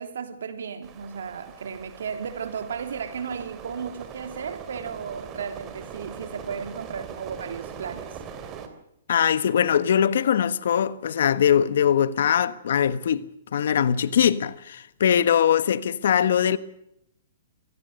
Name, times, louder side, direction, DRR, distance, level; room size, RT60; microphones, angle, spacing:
voice 1, 0.0-8.2, right 6 dB, 80° right, 3.1 m, -34 dB
sound 1, 0.8-8.7, right 7 dB, 25° right, 3.0 m, -41 dB
voice 2, 9.1-13.2 13.5-16.6, left 9 dB, 70° left, 1.3 m, -21 dB
24.5 x 17.5 x 6.6 m
hypercardioid pair, 150°, 0 cm